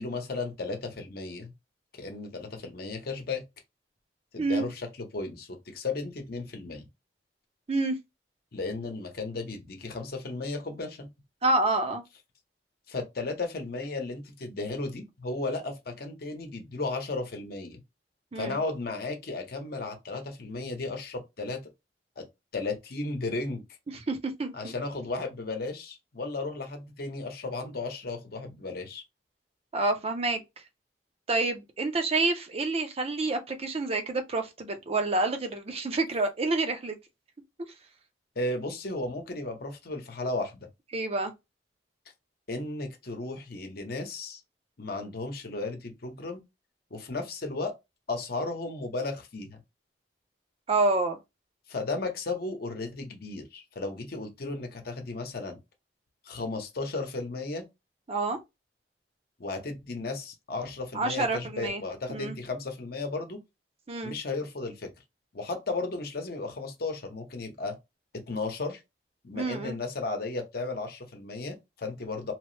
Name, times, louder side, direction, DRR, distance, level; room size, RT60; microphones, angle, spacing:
voice 1, 0.0-1.5 2.0-3.4 4.3-6.8 8.5-11.1 12.9-17.8 18.3-21.6 22.2-22.3 22.5-23.6 24.5-29.0 38.4-40.7 42.5-44.4 44.8-46.4 46.9-47.7 48.1-49.6 51.7-55.6 56.2-57.6 59.4-63.4 64.0-64.9 65.3-67.7 68.3-68.8 69.2-72.3, left 3 dB, 60° left, 0.8 m, -34 dB
voice 2, 11.4-12.0 18.3-18.6 23.9-24.7 29.7-30.4 31.3-37.0 40.9-41.3 50.7-51.2 58.1-58.4 60.9-61.8 62.1-62.3 63.9-64.2 69.3-69.8, right 2 dB, 35° right, 0.5 m, -28 dB
3.0 x 2.0 x 3.1 m
head